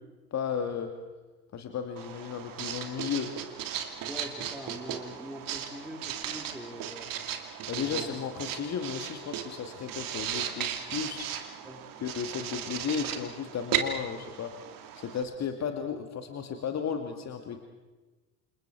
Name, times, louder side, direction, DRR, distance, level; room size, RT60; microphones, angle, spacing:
voice 1, 0.3-0.9 1.5-3.3 7.7-11.3 12.0-14.5 15.0-17.6, left 7 dB, 35° left, 5 dB, 2.2 m, -34 dB
Writing, 2.0-15.2, right 9 dB, 45° right, 2.6 m, -36 dB
voice 2, 4.1-7.1 7.7-8.1 11.6-11.8, equal, ahead, 1 dB, 4.1 m, -43 dB
29.0 x 28.0 x 4.7 m, 1.2 s
figure-of-eight pair, 65°, 46 cm